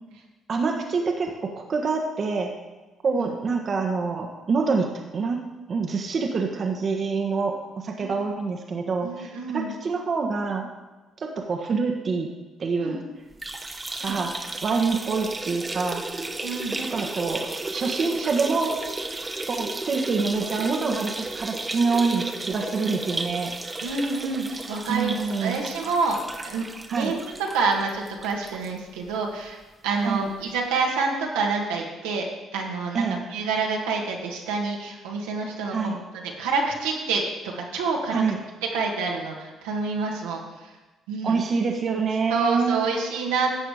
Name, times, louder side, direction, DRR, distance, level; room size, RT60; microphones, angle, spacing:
voice 1, 0.5-2.5 3.0-4.9 5.1-5.4 5.7-10.7 11.2-12.3 12.6-13.0 14.0-14.3 14.6-16.0 16.8-18.8 19.5-23.5 24.9-25.6 26.9-27.1 30.0-30.3 32.9-33.2 35.7-36.0 38.1-38.4 41.2-42.9, right 4 dB, 50° right, 3 dB, 1.4 m, -26 dB
voice 2, 9.0-9.7 12.8-13.0 14.0-14.2 16.4-16.8 23.8-26.7 26.9-32.3 32.5-37.2 37.6-38.2 38.7-40.7 41.1-41.4 42.3-43.6, right 4 dB, 80° right, -1 dB, 1.8 m, -28 dB
sound 1, 13.3-28.7 29.1-29.2 29.5-29.6 30.6-30.7, right 2 dB, 25° right, 1.2 m, -34 dB
12.5 x 7.9 x 5.0 m, 1.2 s
hypercardioid pair, 50°, 0 cm